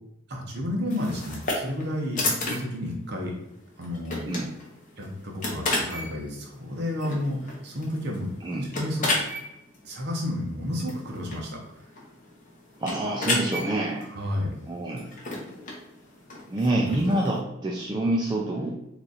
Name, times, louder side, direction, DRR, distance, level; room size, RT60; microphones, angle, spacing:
voice 1, 0.3-3.4 3.8-4.3 5.0-8.3 8.7-9.1 9.8-11.6 14.1-14.5 16.7-17.0, left 1 dB, 55° right, -1 dB, 0.8 m, -31 dB
sound 1, 0.9-17.4, left 2 dB, 40° left, 0.8 m, -34 dB
voice 2, 12.8-14.1 14.7-15.1 16.5-18.7, right 1 dB, 20° right, -2 dB, 0.3 m, -27 dB
3.0 x 2.5 x 3.9 m, 0.87 s
head